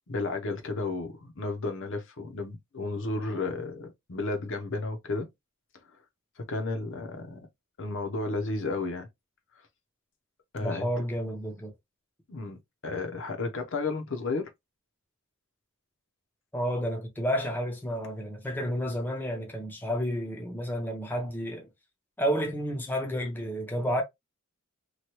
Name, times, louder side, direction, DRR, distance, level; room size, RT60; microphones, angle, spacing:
voice 1, 0.1-5.3 6.4-7.4 7.8-9.1 10.5-10.9 12.3-12.6 12.8-14.5, left 3 dB, 60° left, 0.7 m, -32 dB
voice 2, 10.6-11.7 16.5-21.7 22.2-24.0, equal, 10° left, 0.6 m, -31 dB
3.0 x 2.3 x 2.9 m
head